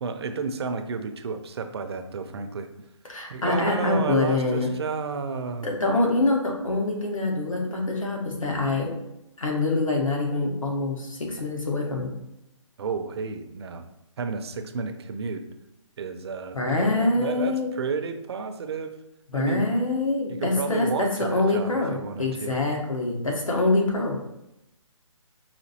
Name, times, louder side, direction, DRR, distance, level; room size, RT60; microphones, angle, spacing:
voice 1, 0.0-2.7 3.3-5.7 12.8-13.9 14.2-15.4 16.0-19.0 19.3-19.7 20.3-22.6, right 5 dB, 50° right, 8 dB, 0.5 m, -32 dB
voice 2, 3.1-4.7 5.6-8.9 9.4-12.1 16.5-17.7 19.3-24.2, left 2 dB, 90° left, 0 dB, 1.2 m, -25 dB
5.0 x 2.7 x 2.8 m, 0.88 s
hypercardioid pair, 150°, 17 cm